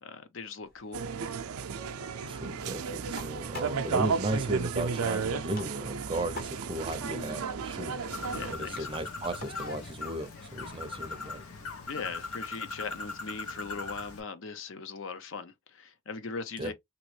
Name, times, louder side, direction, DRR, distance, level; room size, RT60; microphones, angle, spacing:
voice 1, 0.0-1.0 7.1-7.5 8.3-8.9 11.8-16.7, left 4 dB, 60° left, 0.5 m, -40 dB
sound 1, 0.6-12.1, left 3 dB, 40° left, 1.0 m, -50 dB
sound 2, 0.9-8.5, right 5 dB, 80° right, 0.5 m, -33 dB
voice 2, 2.3-7.9 8.5-11.4 16.6-16.7, right 1 dB, 25° right, 0.5 m, -35 dB
Bird, 8.1-14.2, left 3 dB, 85° left, 0.9 m, -40 dB
3.1 x 2.9 x 3.2 m
head